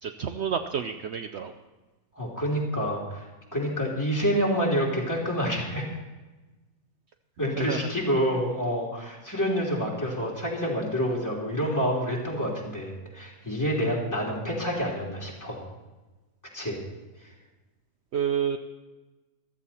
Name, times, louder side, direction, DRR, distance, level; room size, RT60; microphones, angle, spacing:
voice 1, 0.0-1.5 7.7-7.8 18.1-18.6, right 8 dB, 60° right, 7 dB, 0.9 m, -29 dB
voice 2, 2.2-3.2 3.5-5.9 7.4-15.6 16.5-16.8, equal, 15° left, -3 dB, 3.2 m, -28 dB
15.0 x 13.5 x 4.3 m, 1.2 s
omnidirectional pair, 1.4 m